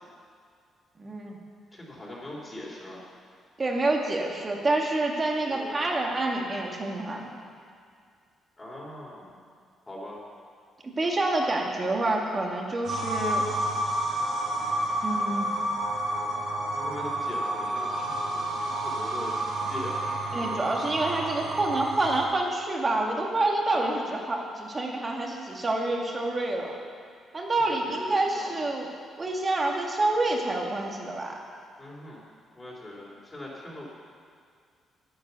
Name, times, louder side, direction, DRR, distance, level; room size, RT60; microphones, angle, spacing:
voice 1, 1.0-1.4 3.6-7.3 11.0-13.7 15.0-15.5 20.3-26.8 27.3-28.9 29.2-31.3, right 2 dB, 30° right, 0 dB, 2.1 m, -27 dB
voice 2, 1.7-3.0 5.5-5.9 8.6-9.3 9.9-10.2 16.7-20.6 23.7-24.0 27.9-28.6 31.8-32.2 32.5-33.9, left 1 dB, 20° left, -5 dB, 3.5 m, -41 dB
sound 1, 12.8-22.2, right 1 dB, 80° right, 3.3 m, -30 dB
10.0 x 10.0 x 7.0 m, 2.2 s
cardioid pair, 90°, 0 cm